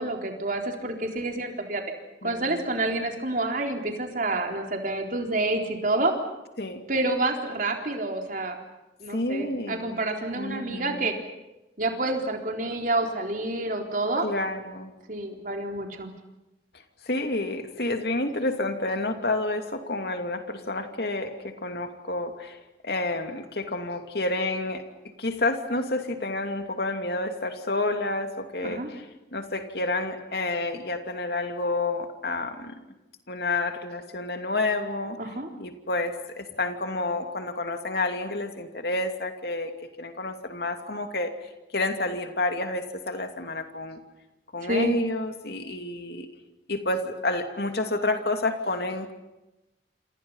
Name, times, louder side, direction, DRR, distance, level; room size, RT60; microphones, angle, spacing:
voice 1, 0.0-1.8 2.2-6.2 6.9-8.6 9.0-11.1 11.8-14.3 15.1-16.1 28.6-28.9 35.2-35.5 44.6-44.9, right 2 dB, 50° right, 3 dB, 3.9 m, -28 dB
voice 2, 2.2-2.7 6.6-6.8 9.1-10.0 10.4-11.1 14.2-14.9 17.0-24.8 25.2-29.0 29.3-32.8 33.3-35.2 35.6-39.7 40.0-41.3 41.7-44.0 44.5-46.3 46.7-49.1, left 2 dB, 60° left, 6 dB, 2.8 m, -29 dB
28.0 x 27.5 x 5.7 m, 0.96 s
head